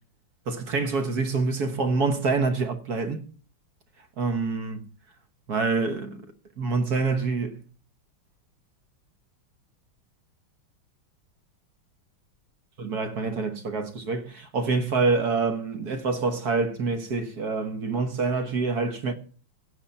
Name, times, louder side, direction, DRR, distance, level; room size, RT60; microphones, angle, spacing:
voice 1, 0.5-3.2 4.2-4.8 5.5-6.3 6.6-7.6 12.8-19.1, right 4 dB, 50° right, 1.5 m, -26 dB
16.0 x 5.8 x 5.4 m
omnidirectional pair, 2.3 m